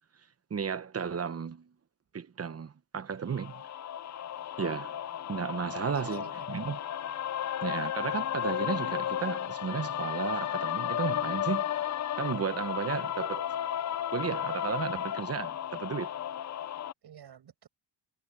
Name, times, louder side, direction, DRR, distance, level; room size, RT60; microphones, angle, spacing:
voice 1, 0.5-1.7 2.1-3.6 4.6-5.0 5.3-6.8 7.6-11.9 12.2-13.5 14.1-16.1, right 6 dB, 35° right, 1.1 m, -34 dB
sound 1, 3.4-16.9, left 11 dB, 40° left, 0.6 m, -34 dB
voice 2, 5.7-6.8 7.0-7.4 17.0-17.7, right 9 dB, 65° right, 7.9 m, -50 dB
cardioid pair, 120°, 43 cm